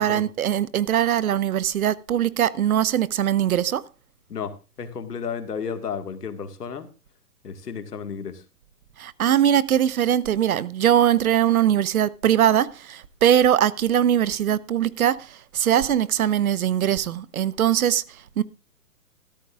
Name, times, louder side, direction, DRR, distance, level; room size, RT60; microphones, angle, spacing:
voice 1, 0.0-3.8 9.0-18.4, right 10 dB, 65° right, 1.0 m, -21 dB
voice 2, 4.3-6.9 7.4-8.4, left 6 dB, 80° left, 2.3 m, -33 dB
13.5 x 12.5 x 3.6 m
hypercardioid pair, 145°, 46 cm